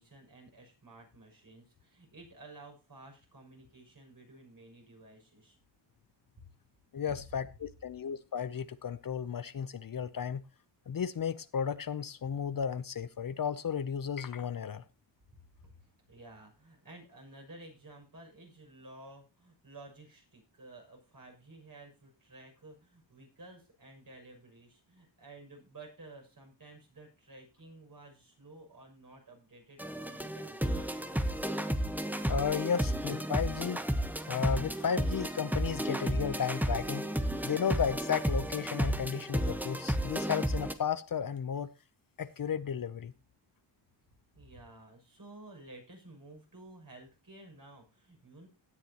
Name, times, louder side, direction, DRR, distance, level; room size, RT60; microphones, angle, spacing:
voice 1, 0.0-5.6 15.6-15.7 16.1-30.9 44.3-48.5, right 2 dB, 50° right, 1 dB, 6.7 m, -53 dB
voice 2, 6.9-10.4 10.9-14.8 32.3-33.8 34.3-37.0 37.4-41.7 42.2-43.1, left 7 dB, 50° left, 15 dB, 0.7 m, -34 dB
sound 1, 29.8-40.7, right 1 dB, 5° right, 1.2 m, -33 dB
17.0 x 9.9 x 2.9 m, 0.29 s
wide cardioid pair, 90°, 44 cm